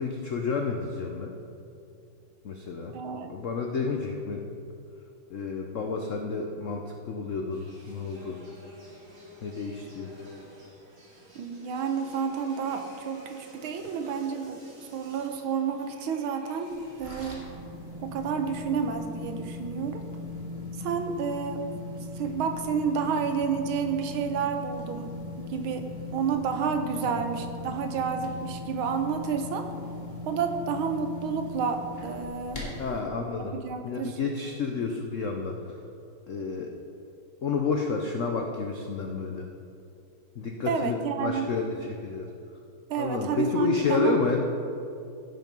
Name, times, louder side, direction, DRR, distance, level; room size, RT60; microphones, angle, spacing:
voice 1, 0.0-1.3 2.4-3.0 3.3-4.5 5.3-8.4 9.4-10.1 27.0-27.2 32.8-33.6 33.8-35.8 36.3-36.7 37.4-39.5 40.3-42.3 43.0-44.4, left 4 dB, 70° left, 2 dB, 0.7 m, -30 dB
voice 2, 2.9-3.3 11.4-16.7 17.0-17.5 18.0-20.0 20.8-21.7 22.2-29.7 30.3-32.6 33.4-34.2 40.7-41.5 42.9-44.2, right 6 dB, 80° right, 6 dB, 1.7 m, -30 dB
sound 1, 7.5-17.3, left 1 dB, 45° right, 2.9 m, -51 dB
sound 2, 16.7-33.0, left 2 dB, 20° left, 2.7 m, -39 dB
16.5 x 5.8 x 5.3 m, 2.6 s
omnidirectional pair, 2.3 m